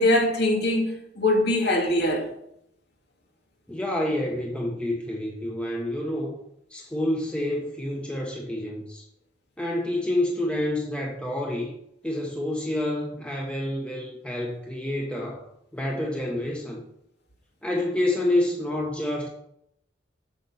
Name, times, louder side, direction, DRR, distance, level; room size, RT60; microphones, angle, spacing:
voice 1, 0.0-2.2, left 1 dB, 65° left, 2.3 m, -22 dB
voice 2, 3.7-6.4 6.7-9.0 9.6-11.7 12.0-16.8 17.6-19.3, left 1 dB, 5° left, 1.2 m, -28 dB
8.5 x 6.0 x 5.6 m
head